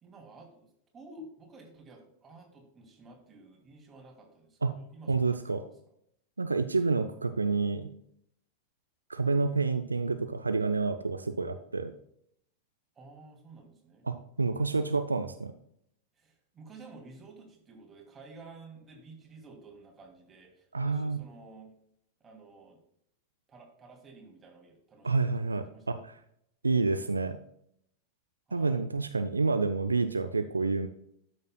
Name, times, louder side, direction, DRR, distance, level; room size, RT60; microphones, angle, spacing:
voice 1, 0.0-5.6 13.0-14.1 16.2-21.7 22.2-22.8 23.5-26.0 28.5-28.9, right 3 dB, 20° right, 1 dB, 2.4 m, -52 dB
voice 2, 5.1-5.6 6.4-7.9 9.1-11.9 14.0-15.5 20.7-21.2 25.0-26.1 26.6-27.4 28.5-30.9, right 4 dB, 80° right, 9 dB, 0.5 m, -29 dB
13.0 x 6.5 x 2.2 m, 0.71 s
figure-of-eight pair, 90°, 0 cm